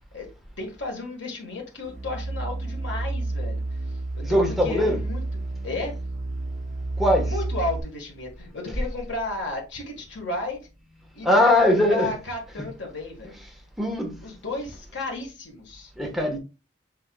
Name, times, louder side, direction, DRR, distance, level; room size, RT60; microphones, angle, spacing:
voice 1, 0.6-3.6 4.1-5.2 5.6-5.9 7.2-10.6 11.1-13.3 14.2-15.9, left 2 dB, 85° left, 1.5 m, -33 dB
sound 1, 1.9-7.8, right 2 dB, 40° right, 0.8 m, -30 dB
voice 2, 4.2-5.0 7.0-7.4 11.2-12.1 12.6-12.7 13.8-14.1 16.0-16.4, left 1 dB, ahead, 1.1 m, -21 dB
6.4 x 3.6 x 2.2 m
head